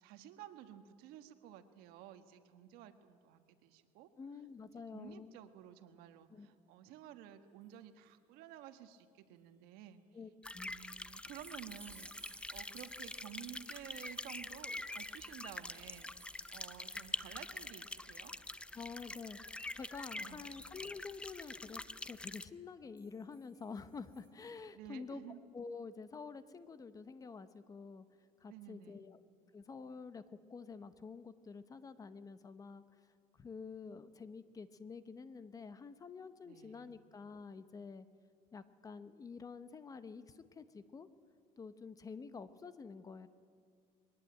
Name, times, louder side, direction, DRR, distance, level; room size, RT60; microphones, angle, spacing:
voice 1, 0.0-4.1 4.9-10.0 10.5-18.3 20.2-20.5 24.7-25.4 28.5-29.1 36.4-37.0, right 11 dB, 80° right, 9 dB, 1.6 m, -53 dB
voice 2, 4.2-5.4 6.3-6.5 10.1-10.7 18.7-25.2 25.5-28.0 28.4-29.2 29.5-32.8 33.3-38.1 38.5-41.1 41.6-43.3, left 5 dB, 25° left, 12 dB, 0.9 m, -49 dB
sound 1, 10.4-22.5, left 2 dB, 5° left, 0.5 m, -46 dB
sound 2, 10.8-17.8 18.1-18.3 19.7-20.0 23.0-24.3, right 4 dB, 15° right, 4.6 m, -62 dB
22.0 x 19.0 x 9.1 m, 2.2 s
cardioid pair, 150°, 16 cm